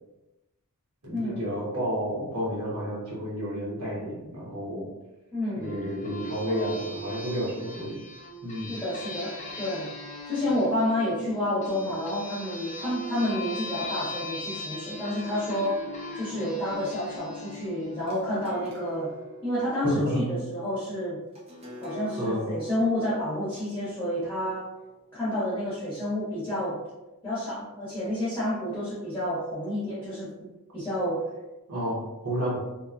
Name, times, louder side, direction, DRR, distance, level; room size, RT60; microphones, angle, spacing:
voice 1, 1.0-4.9 5.6-8.0 8.4-8.7 19.8-20.4 22.2-22.5 31.7-32.6, equal, 85° right, -7 dB, 1.0 m, -30 dB
voice 2, 5.3-5.7 8.7-9.9 10.3-15.8 16.1-19.1 19.4-21.2 21.8-24.7 25.1-26.8 27.2-31.2, left 1 dB, 10° left, -10 dB, 0.9 m, -29 dB
sound 1, 5.6-18.8, left 1 dB, 35° left, 0.4 m, -39 dB
sound 2, 17.8-25.6, left 1 dB, 30° right, 0.6 m, -45 dB
2.8 x 2.2 x 2.4 m, 1.0 s
head